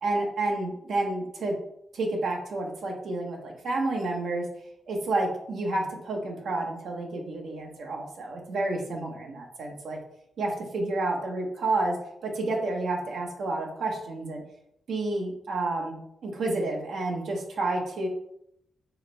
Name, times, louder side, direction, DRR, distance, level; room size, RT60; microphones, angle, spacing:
voice 1, 0.0-1.5 1.9-4.5 4.9-10.0 10.4-12.0 12.2-14.4 14.9-18.1, right 2 dB, 80° right, 0 dB, 1.0 m, -30 dB
4.6 x 3.3 x 3.3 m, 0.77 s
cardioid pair, 60°, 0 cm